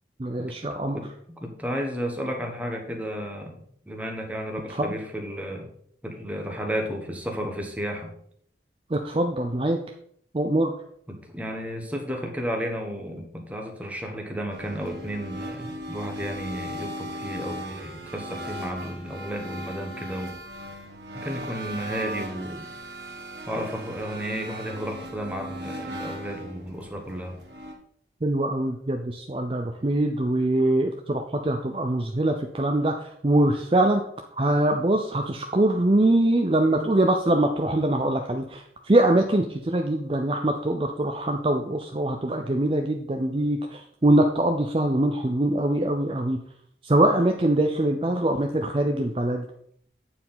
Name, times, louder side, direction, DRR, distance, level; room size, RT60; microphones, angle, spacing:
voice 1, 0.2-1.0 4.8-4.9 8.9-9.8 10.3-10.7 28.2-32.9 33.2-34.0 34.4-46.4 46.8-49.4, right 1 dB, 30° right, 3 dB, 0.5 m, -23 dB
voice 2, 1.4-3.5 3.9-5.7 6.0-8.1 11.1-20.3 21.1-22.7 23.5-27.4, equal, 10° right, 2 dB, 1.2 m, -33 dB
sound 1, 14.5-27.7, right 1 dB, 85° right, 1.4 m, -38 dB
8.4 x 4.7 x 5.6 m, 0.66 s
head